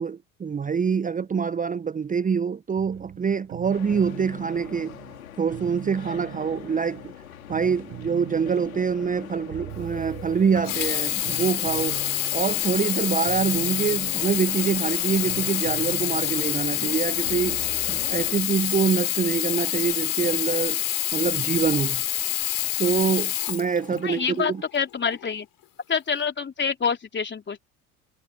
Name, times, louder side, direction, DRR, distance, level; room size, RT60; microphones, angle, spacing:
voice 1, 0.0-4.9 5.4-7.0 7.5-12.0 12.3-20.8 21.1-22.0 22.8-24.6, right 6 dB, 20° right, 0.9 m, -25 dB
sound 1, 2.8-18.9, right 16 dB, 50° right, 4.7 m, -42 dB
sound 2, 3.7-18.4, left 11 dB, 75° left, 3.9 m, -42 dB
Sink (filling or washing), 10.6-24.3 25.1-25.2, left 14 dB, 50° left, 4.4 m, -27 dB
voice 2, 24.0-25.5 25.9-27.6, left 6 dB, 25° left, 3.6 m, -27 dB
figure-of-eight pair, 60°, 42 cm